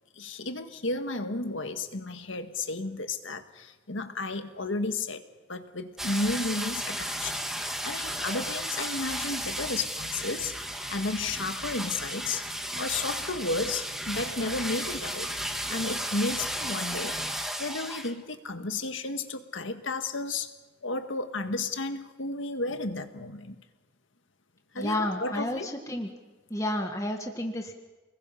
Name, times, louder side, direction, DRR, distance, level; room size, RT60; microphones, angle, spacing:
voice 1, 0.2-5.2 5.5-12.4 12.7-17.2 17.6-20.5 20.8-23.6 24.7-25.7, left 3 dB, 80° left, 7 dB, 1.7 m, -33 dB
sound 1, 6.0-18.1 18.5-18.6, equal, ahead, 1.5 m, -34 dB
voice 2, 24.7-26.1 26.5-27.7, left 1 dB, 15° left, 3 dB, 1.7 m, -31 dB
30.0 x 21.0 x 5.7 m, 1.2 s
head